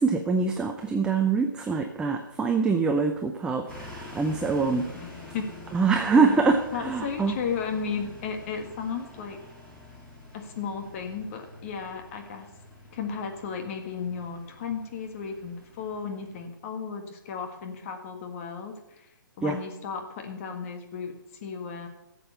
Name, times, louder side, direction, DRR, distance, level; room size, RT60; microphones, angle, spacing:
voice 1, 0.0-4.8 5.7-7.4 19.4-19.6, right 4 dB, 5° right, 5 dB, 0.6 m, -24 dB
sound 1, 3.7-16.4, left 2 dB, 10° left, 2.9 m, -47 dB
voice 2, 4.9-5.5 6.2-6.4 6.7-9.4 10.3-12.5 12.9-19.1 19.4-21.9, left 6 dB, 40° left, 4 dB, 1.7 m, -34 dB
13.5 x 7.6 x 6.8 m, 0.92 s
hypercardioid pair, 140°, 11 cm